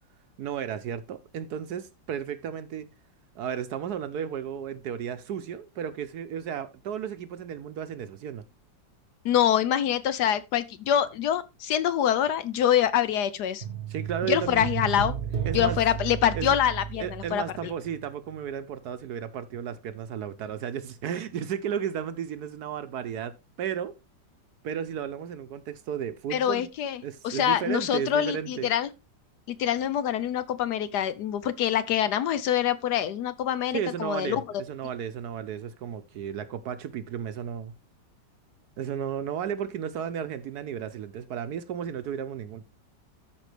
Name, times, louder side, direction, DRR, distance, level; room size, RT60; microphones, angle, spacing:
voice 1, 0.4-2.9 3.4-8.4 13.9-14.7 15.5-15.8 16.3-16.5 17.0-23.9 24.6-26.7 27.0-28.7 33.7-37.7 38.8-42.6, right 8 dB, 65° right, 1.1 m, -34 dB
voice 2, 9.2-13.6 14.3-15.1 15.5-17.4 26.3-28.9 29.6-34.4, left 10 dB, 70° left, 1.1 m, -25 dB
sound 1, 13.6-18.1 18.3-18.4, right 8 dB, 35° right, 1.1 m, -33 dB
13.0 x 5.2 x 3.3 m
omnidirectional pair, 2.0 m